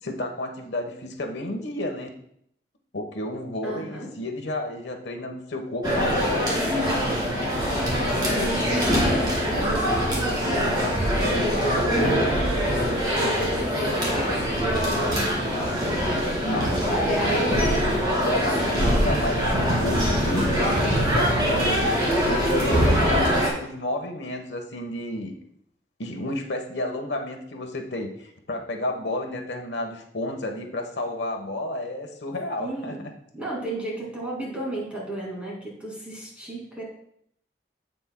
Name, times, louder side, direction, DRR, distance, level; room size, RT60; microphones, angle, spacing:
voice 1, 0.0-2.1 2.9-6.5 16.4-21.4 22.3-25.3 26.0-33.0, left 1 dB, 90° left, 4 dB, 1.1 m, -31 dB
voice 2, 3.6-4.2 8.2-10.7 11.4-15.6 16.9-19.1 21.5-22.0 22.7-23.5 32.6-33.0 33.3-36.8, right 1 dB, 5° right, -3 dB, 2.3 m, -34 dB
sound 1, 5.8-23.5, equal, 25° right, 2.3 m, -23 dB
15.5 x 5.3 x 2.2 m, 0.70 s
head